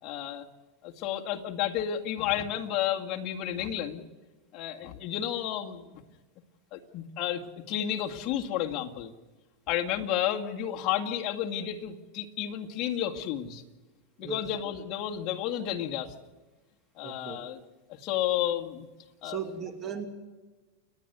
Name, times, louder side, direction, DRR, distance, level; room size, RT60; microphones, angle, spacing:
voice 1, 0.0-0.4 0.8-4.0 4.5-6.0 6.7-9.1 9.7-13.6 14.2-16.1 17.0-17.6 17.9-18.9 19.2-19.4, left 11 dB, 40° left, 2 dB, 2.1 m, -31 dB
voice 2, 17.0-17.4 19.2-20.1, right 7 dB, 30° right, 7 dB, 2.6 m, -37 dB
29.5 x 10.5 x 8.2 m, 1.2 s
supercardioid pair, 140°, 0 cm